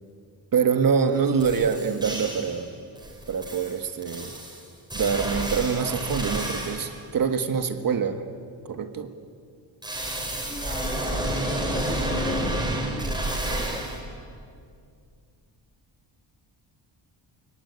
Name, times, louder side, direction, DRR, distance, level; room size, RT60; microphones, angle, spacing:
voice 1, 0.5-2.7 3.3-4.4 4.9-8.2 8.6-9.1, right 6 dB, 45° right, 8 dB, 1.7 m, -25 dB
sound 1, 1.1-1.2 1.4-2.6 3.0-7.0 9.8-14.0, right 1 dB, 10° right, 4.8 m, -30 dB
voice 2, 10.5-13.9, left 2 dB, 15° left, 6 dB, 1.6 m, -39 dB
29.5 x 18.0 x 9.7 m, 2.3 s
wide cardioid pair, 165°, 46 cm